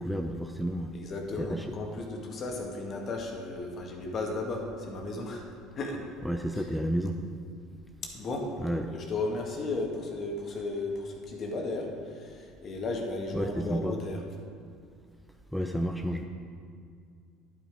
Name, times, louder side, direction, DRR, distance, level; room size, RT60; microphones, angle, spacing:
voice 1, 0.0-0.9 1.4-1.7 6.2-7.2 8.6-8.9 13.3-13.9 15.5-16.2, equal, ahead, 5 dB, 0.7 m, -31 dB
voice 2, 0.9-5.5 5.8-6.0 8.1-8.4 9.1-14.2, left 2 dB, 45° left, 1 dB, 1.9 m, -34 dB
11.0 x 7.9 x 4.9 m, 2.2 s
hypercardioid pair, 70°, 0 cm